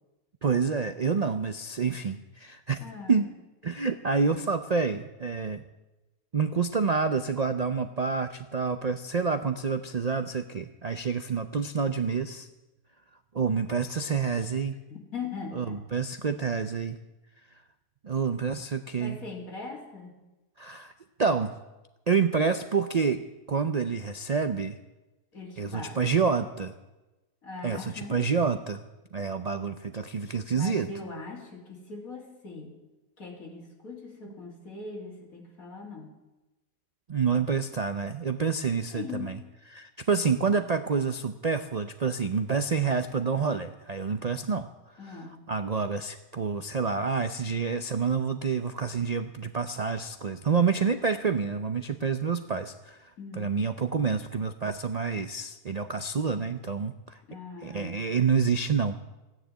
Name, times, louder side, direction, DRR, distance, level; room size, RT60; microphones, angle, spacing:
voice 1, 0.4-3.3 3.6-5.6 6.3-12.5 13.3-14.8 15.5-17.0 18.0-19.2 20.6-20.9 21.2-21.5 22.1-24.8 25.6-26.8 27.6-28.8 29.1-30.9 37.1-39.4 39.7-44.7 45.0-57.2 57.6-59.0, right 5 dB, 90° right, 8 dB, 0.3 m, -28 dB
voice 2, 2.8-3.2 14.9-15.8 19.0-20.2 25.3-26.1 27.4-28.3 30.5-32.7 33.2-36.1 38.9-39.4 45.0-45.4 53.2-53.5 57.3-58.0, left 4 dB, 65° left, 0 dB, 3.1 m, -40 dB
14.5 x 9.8 x 8.9 m, 1.1 s
omnidirectional pair, 1.6 m